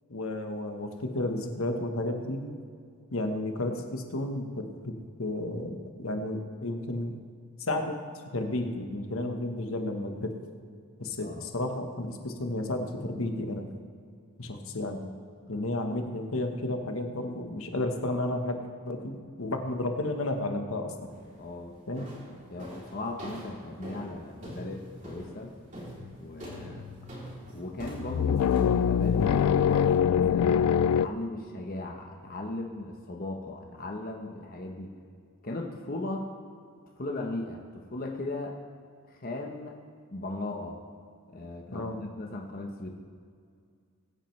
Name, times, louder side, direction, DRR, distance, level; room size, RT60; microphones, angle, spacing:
voice 1, 0.1-2.6 3.1-7.2 7.6-8.0 8.3-10.4 11.0-13.7 14.4-15.1 15.5-21.1 21.9-22.1 41.7-42.0, left 1 dB, 70° left, 5 dB, 1.2 m, -32 dB
sound 1, 21.1-21.5 22.0-29.9, equal, 35° right, 3.0 m, -44 dB
voice 2, 21.4-21.8 22.5-25.5 26.2-26.8 27.5-35.0 35.4-36.3 37.0-38.6 39.1-39.8 40.1-40.8 41.3-42.9, left 2 dB, 40° left, 2 dB, 0.9 m, -37 dB
sound 2, 26.0-26.1 26.5-27.1 27.9-31.1, left 8 dB, 90° left, 0.3 m, -24 dB
21.5 x 8.8 x 3.2 m, 2.2 s
head